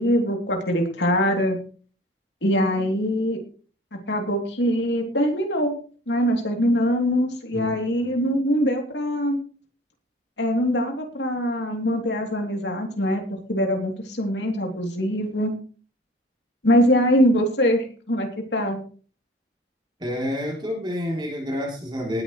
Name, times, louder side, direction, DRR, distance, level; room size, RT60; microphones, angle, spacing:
voice 1, 0.0-1.6 2.4-3.4 3.9-5.7 6.1-9.4 10.4-13.2 13.5-15.5 16.6-18.8, equal, 80° left, 3 dB, 3.0 m, -23 dB
voice 2, 20.0-22.2, left 1 dB, 25° right, -1 dB, 3.2 m, -29 dB
18.5 x 10.5 x 3.2 m, 0.39 s
head